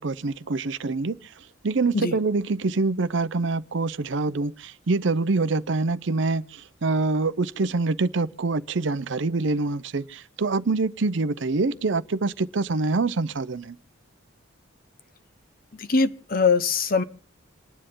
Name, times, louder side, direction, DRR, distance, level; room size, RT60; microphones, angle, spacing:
voice 1, 0.0-13.8, right 3 dB, 65° right, 0.6 m, -25 dB
voice 2, 15.7-17.0, left 4 dB, 45° left, 0.8 m, -22 dB
28.0 x 10.0 x 3.8 m
head